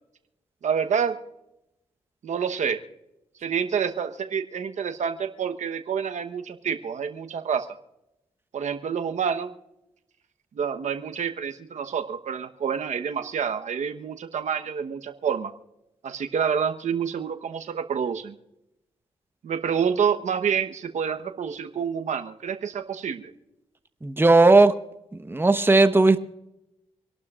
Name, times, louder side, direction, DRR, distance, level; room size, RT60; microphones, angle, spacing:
voice 1, 0.6-1.2 2.2-2.8 3.4-7.7 8.5-9.5 10.5-15.5 16.0-18.4 19.4-23.3, right 7 dB, 70° right, 8 dB, 1.0 m, -28 dB
voice 2, 24.0-24.7 25.3-26.2, right 3 dB, 15° right, 10 dB, 1.0 m, -16 dB
27.0 x 12.0 x 2.4 m, 0.88 s
cardioid pair, 55°, 13 cm